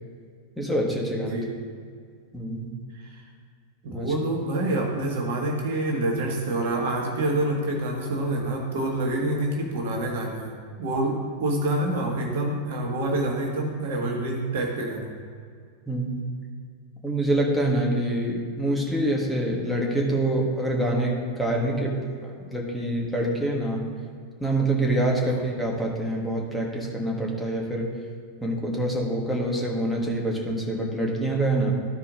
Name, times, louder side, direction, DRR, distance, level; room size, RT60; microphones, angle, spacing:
voice 1, 0.6-1.4 2.3-2.8 3.9-4.1 15.9-16.3 17.0-23.8 24.4-27.9 28.4-31.7, right 1 dB, ahead, -2 dB, 1.6 m, -26 dB
voice 2, 1.2-1.5 2.9-3.2 3.8-10.5 10.8-15.2 25.2-25.4, right 1 dB, 55° right, 1 dB, 1.4 m, -27 dB
14.0 x 4.8 x 3.7 m, 2.1 s
figure-of-eight pair, 90°, 0 cm